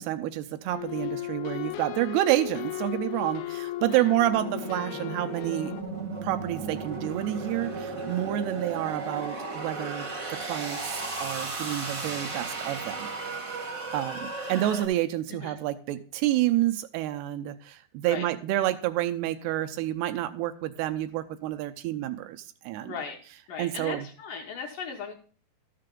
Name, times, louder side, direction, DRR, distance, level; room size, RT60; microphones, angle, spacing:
voice 1, 0.0-5.7 6.2-10.8 11.2-13.1 13.7-22.9 23.6-24.1, right 14 dB, 85° right, 8 dB, 2.6 m, -29 dB
sound 1, 0.7-5.8, left 16 dB, 90° left, 2.1 m, -36 dB
sound 2, 4.3-14.8, right 3 dB, 50° right, 0.9 m, -35 dB
voice 2, 22.8-23.2 23.5-25.1, left 6 dB, 70° left, 2 dB, 2.1 m, -37 dB
13.0 x 6.7 x 3.7 m, 0.41 s
omnidirectional pair, 4.7 m